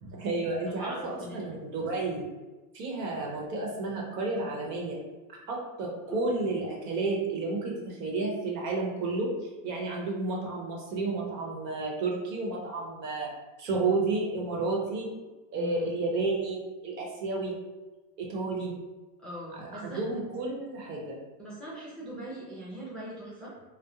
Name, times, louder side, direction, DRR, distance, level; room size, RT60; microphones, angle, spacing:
voice 1, 0.0-2.3 2.7-5.0 5.5-9.3 9.6-13.3 13.6-15.1 15.5-17.6 18.2-18.7 19.5-21.2, right 3 dB, 80° right, -1 dB, 0.9 m, -31 dB
voice 2, 0.6-1.4 6.1-6.2 15.5-15.9 19.2-20.0 21.4-23.7, equal, ahead, -8 dB, 0.4 m, -41 dB
2.3 x 2.0 x 2.9 m, 1.2 s
supercardioid pair, 115°, 48 cm